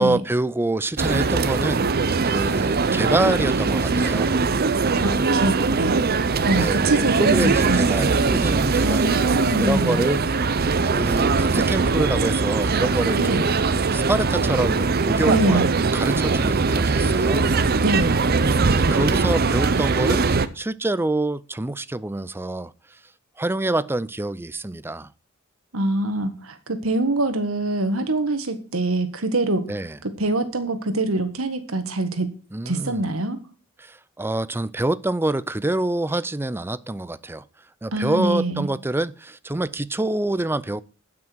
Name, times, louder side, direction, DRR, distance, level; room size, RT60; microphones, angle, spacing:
voice 1, 0.0-1.9 2.2-4.4 6.5-9.1 9.6-10.2 10.9-13.5 13.9-17.5 18.7-20.3 20.5-22.7 23.4-25.1 29.7-30.0 32.5-33.0 33.8-37.4 37.8-40.8, right 2 dB, 10° right, 0.5 m, -26 dB
sound 1, 1.0-20.5, right 4 dB, 50° right, 0.7 m, -21 dB
voice 2, 5.0-6.0 6.4-8.0 8.8-10.1 13.1-13.5 15.2-15.7 17.8-18.1 25.7-29.6 30.2-32.3 32.6-33.4 37.9-38.7, right 2 dB, 85° right, 1.7 m, -24 dB
16.0 x 6.2 x 4.6 m
head